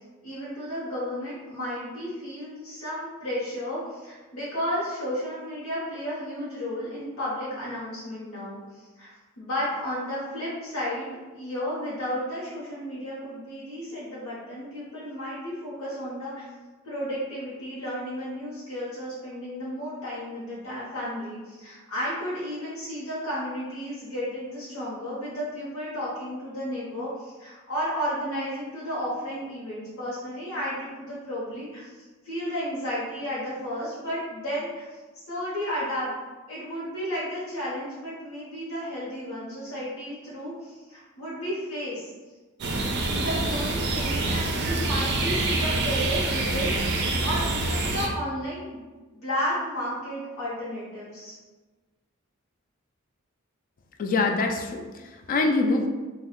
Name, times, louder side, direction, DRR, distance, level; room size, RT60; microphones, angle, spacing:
voice 1, 0.2-9.1 9.4-16.4 16.8-36.1 36.5-42.1 43.1-46.7 47.2-48.8 49.1-51.3, equal, 70° left, -9 dB, 0.9 m, -33 dB
sound 1, 42.6-48.1, right 2 dB, 50° right, 0.4 m, -26 dB
voice 2, 54.0-55.9, left 3 dB, 40° left, 3 dB, 0.3 m, -25 dB
2.9 x 2.2 x 3.6 m, 1.3 s
head